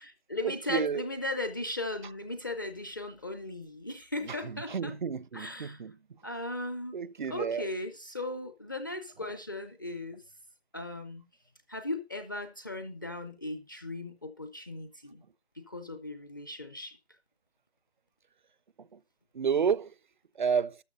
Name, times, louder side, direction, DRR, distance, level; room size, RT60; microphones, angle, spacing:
voice 1, 0.0-5.0 5.3-5.8 6.2-7.0 7.3-10.2 10.7-11.3 11.7-15.2 15.6-17.0, left 2 dB, 20° left, 0.6 m, -37 dB
voice 2, 0.7-1.0 4.3-5.9 6.9-7.7 19.3-19.9 20.4-20.7, right 6 dB, 45° right, 0.5 m, -30 dB
12.5 x 6.2 x 5.1 m
hypercardioid pair, 165°, 33 cm